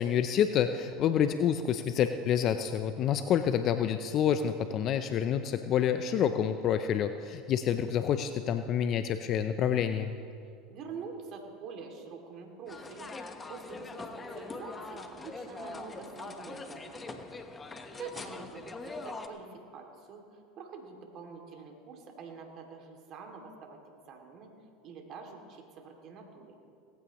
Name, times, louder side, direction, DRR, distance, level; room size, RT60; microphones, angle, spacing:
voice 1, 0.0-10.1, left 9 dB, 50° left, 9 dB, 0.6 m, -28 dB
voice 2, 10.7-13.1 13.5-17.3 17.9-23.8 24.1-24.5 24.8-26.6, right 5 dB, 50° right, 2 dB, 2.5 m, -46 dB
sound 1, 12.7-19.3, left 3 dB, 20° left, 1.2 m, -42 dB
18.5 x 15.5 x 3.1 m, 2.3 s
hypercardioid pair, 90°, 0 cm